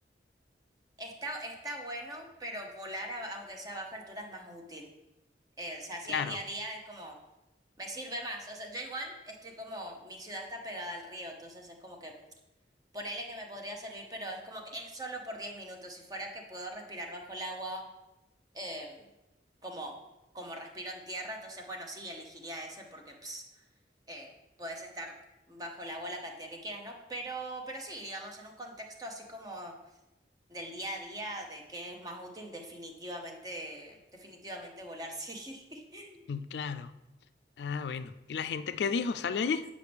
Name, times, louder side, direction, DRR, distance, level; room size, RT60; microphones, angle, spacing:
voice 1, 1.0-4.9 5.6-7.2 7.8-12.1 12.9-17.8 18.5-19.0 19.6-19.9 20.3-23.4 24.1-24.3 24.6-25.1 25.5-29.7 30.5-36.2, right 1 dB, 20° right, 2 dB, 0.8 m, -41 dB
voice 2, 36.3-36.9 37.6-39.7, left 5 dB, 70° left, 12 dB, 0.3 m, -32 dB
8.2 x 5.1 x 3.4 m, 0.99 s
head